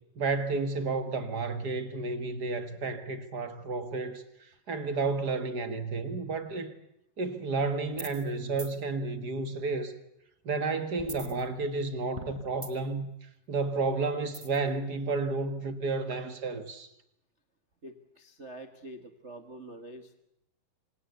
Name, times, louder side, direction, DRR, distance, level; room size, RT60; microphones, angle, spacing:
voice 1, 0.1-4.2 4.7-6.7 7.2-9.9 10.4-13.1 13.5-16.9, right 3 dB, 40° right, 1.4 m, -31 dB
sound 1, 7.9-8.3 8.6-8.7 11.0-11.8 12.2-13.0 14.3-14.7, right 2 dB, 20° right, 0.8 m, -43 dB
voice 2, 17.8-20.1, right 1 dB, 60° right, 0.7 m, -46 dB
28.0 x 25.5 x 8.2 m
omnidirectional pair, 4.3 m